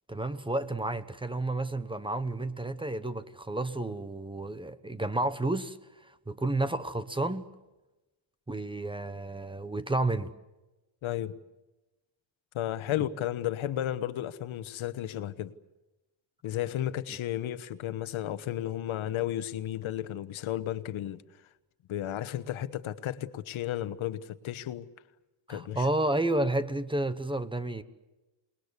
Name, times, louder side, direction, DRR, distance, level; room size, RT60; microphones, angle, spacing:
voice 1, 0.1-7.5 8.5-10.3 25.5-27.8, right 2 dB, 10° right, 1.1 m, -31 dB
voice 2, 11.0-11.3 12.5-15.5 16.4-21.2 21.9-24.9 25.5-25.9, left 12 dB, 75° left, 1.3 m, -33 dB
28.0 x 20.5 x 8.2 m
cardioid pair, 145°, 48 cm